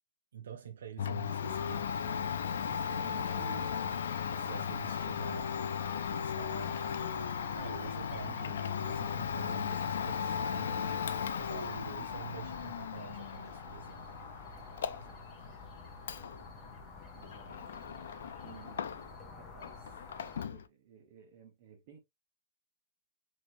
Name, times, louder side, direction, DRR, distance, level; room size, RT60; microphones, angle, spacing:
voice 1, 0.3-3.8 4.3-5.6 6.1-7.2 7.5-14.0, right 8 dB, 75° right, 0.5 m, -48 dB
Domestic sounds home sounds, 1.0-19.3 19.6-20.6, left 7 dB, 75° left, 0.4 m, -37 dB
sound 1, 1.4-20.5, left 3 dB, 15° left, 0.7 m, -49 dB
voice 2, 14.9-15.3 17.2-17.5 18.4-19.0 19.3-19.9 20.4-22.0, right 7 dB, 35° right, 1.1 m, -57 dB
3.4 x 3.1 x 2.6 m
hypercardioid pair, 175°, 0 cm